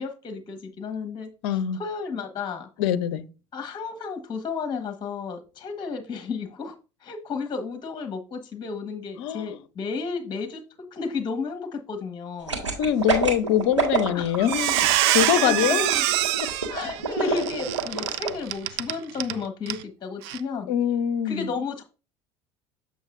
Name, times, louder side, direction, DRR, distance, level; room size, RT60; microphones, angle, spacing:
voice 1, 0.0-2.7 3.5-6.7 7.0-12.7 14.1-14.4 15.1-16.0 16.7-20.7 21.2-21.8, left 5 dB, 30° left, 1.5 m, -33 dB
voice 2, 1.4-1.8 2.8-3.2 9.2-9.5 12.8-15.9 17.2-17.4 20.7-21.5, left 10 dB, 65° left, 0.7 m, -24 dB
sound 1, 12.5-18.3 18.7-18.8, right 4 dB, 85° right, 1.8 m, -26 dB
Squeak, 13.8-14.1 14.4-19.4 19.7-19.8 20.2-20.4, right 15 dB, 65° right, 0.5 m, -25 dB
7.8 x 6.7 x 2.6 m
figure-of-eight pair, 65°, 15 cm